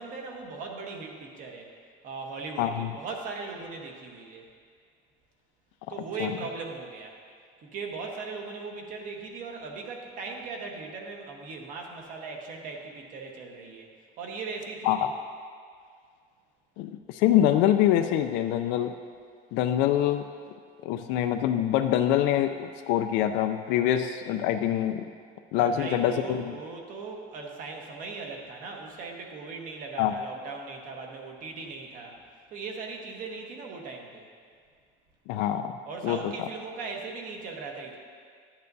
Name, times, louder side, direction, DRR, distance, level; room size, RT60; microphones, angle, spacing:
voice 1, 0.0-1.7 2.0-4.5 5.9-7.2 7.6-13.9 14.2-15.1 25.6-32.2 32.5-34.2 35.8-38.0, right 4 dB, 45° right, 1 dB, 1.1 m, -39 dB
voice 2, 2.6-2.9 6.2-6.3 14.8-15.0 16.8-18.9 19.5-20.3 20.8-25.1 25.5-26.5 30.0-30.1 35.3-35.7 36.0-36.2, left 11 dB, 85° left, 6 dB, 0.4 m, -25 dB
11.5 x 8.7 x 2.7 m, 2.1 s
cardioid pair, 165°, 18 cm